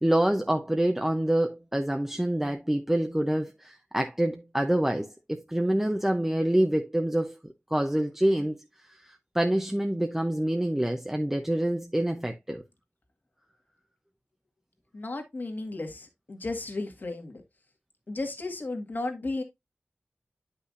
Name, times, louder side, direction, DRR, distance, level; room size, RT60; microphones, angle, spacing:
voice 1, 0.0-7.3 7.7-8.6 9.0-12.6, right 1 dB, 10° right, 0.8 m, -26 dB
voice 2, 14.9-17.4 18.1-19.4, left 2 dB, 50° left, 1.9 m, -34 dB
10.0 x 5.7 x 2.6 m
wide cardioid pair, 100°, 4 cm